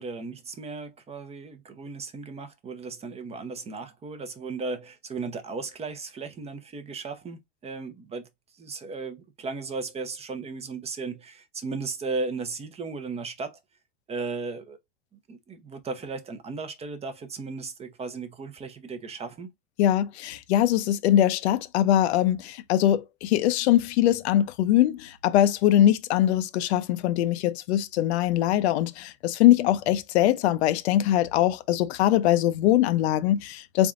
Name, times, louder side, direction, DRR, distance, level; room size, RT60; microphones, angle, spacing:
voice 1, 0.0-8.3 8.6-13.6 14.1-14.8 15.3-19.5, right 4 dB, 20° right, 0.6 m, -36 dB
voice 2, 19.8-33.9, left 12 dB, 75° left, 0.6 m, -22 dB
3.8 x 3.5 x 2.4 m
supercardioid pair, 125°, 33 cm